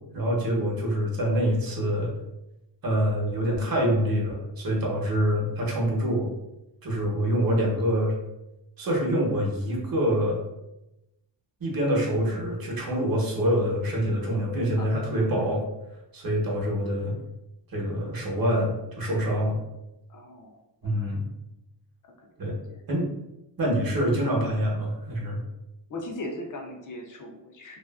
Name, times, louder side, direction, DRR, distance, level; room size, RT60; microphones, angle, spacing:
voice 1, 0.0-2.1 2.8-6.3 6.8-8.1 8.8-10.4 11.6-15.6 16.1-17.2 17.7-19.6 20.8-21.3 22.4-22.6 22.9-23.1 23.6-25.4, equal, 50° right, -2 dB, 0.8 m, -25 dB
voice 2, 14.8-15.4 20.1-21.1 22.2-22.8 25.9-27.8, left 1 dB, 45° left, 2 dB, 0.4 m, -40 dB
2.6 x 2.4 x 2.3 m, 0.93 s
wide cardioid pair, 140°, 45 cm